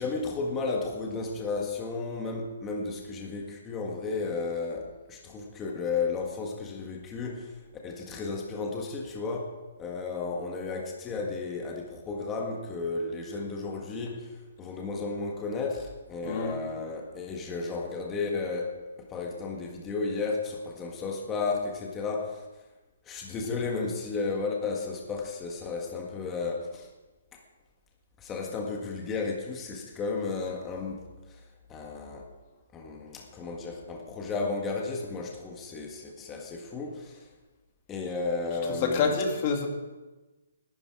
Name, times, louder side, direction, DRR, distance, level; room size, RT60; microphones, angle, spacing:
voice 1, 0.0-22.5 23.0-26.9 27.3-27.4 28.2-31.4 31.7-32.3 32.7-37.2 37.9-39.2, left 4 dB, 15° left, 0 dB, 1.7 m, -33 dB
voice 2, 16.2-16.6 38.8-39.7, left 5 dB, 30° left, 3 dB, 2.3 m, -27 dB
19.5 x 12.0 x 4.8 m, 1.2 s
hypercardioid pair, 165°, 0 cm